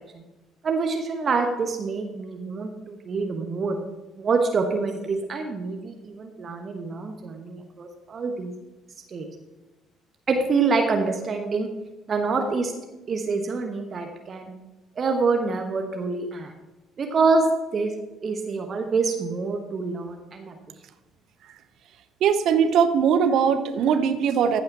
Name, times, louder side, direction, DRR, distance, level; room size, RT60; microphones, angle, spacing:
voice 1, 0.6-3.8 4.2-8.5 9.1-9.2 10.3-11.7 12.1-12.7 13.1-14.5 15.0-16.5 17.0-17.5 17.7-17.9 18.2-20.6, right 4 dB, 40° right, 4 dB, 1.1 m, -26 dB
voice 2, 22.2-24.6, right 7 dB, 55° right, 9 dB, 0.8 m, -20 dB
14.5 x 5.7 x 5.9 m, 1.1 s
figure-of-eight pair, 50°, 0 cm